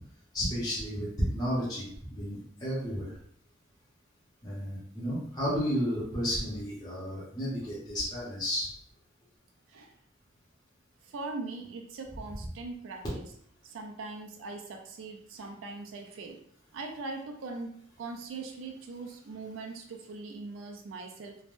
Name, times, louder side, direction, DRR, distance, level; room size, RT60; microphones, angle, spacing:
voice 1, 0.3-3.2 4.4-8.7, equal, 20° left, -9 dB, 0.7 m, -32 dB
voice 2, 11.0-13.3 13.6-16.4 16.7-21.4, right 3 dB, 70° right, 3 dB, 0.3 m, -41 dB
3.3 x 2.1 x 2.4 m, 0.66 s
head